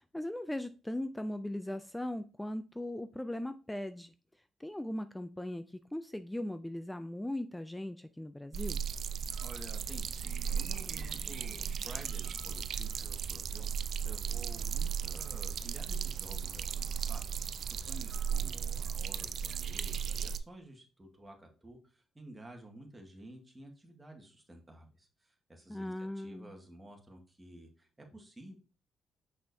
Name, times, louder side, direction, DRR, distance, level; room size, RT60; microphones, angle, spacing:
voice 1, 0.0-4.1 4.6-8.8 25.7-26.5, left 1 dB, 10° left, 11 dB, 0.4 m, -39 dB
sound 1, 8.5-20.4, right 7 dB, 60° right, 0.5 m, -36 dB
voice 2, 9.4-13.7 14.0-17.3 17.7-28.6, right 1 dB, 15° right, 1 dB, 2.0 m, -52 dB
6.3 x 6.1 x 2.7 m, 0.35 s
cardioid pair, 90°, 0 cm